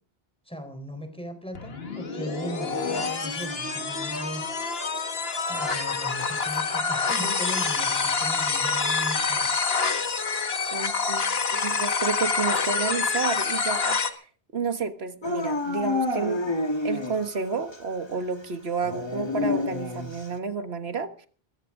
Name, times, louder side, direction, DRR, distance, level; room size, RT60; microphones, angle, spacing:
voice 1, 0.5-4.5 5.5-9.5, equal, 5° left, 4.0 m, -38 dB
sound 1, 1.5-14.1, left 4 dB, 75° left, 1.8 m, -27 dB
voice 2, 10.7-14.3 14.5-16.5 16.8-21.3, right 4 dB, 85° right, 1.7 m, -31 dB
Dog / Siren, 15.2-17.4 17.7-17.8 18.8-20.3, left 2 dB, 25° left, 1.8 m, -28 dB
21.5 x 15.0 x 3.7 m
omnidirectional pair, 1.0 m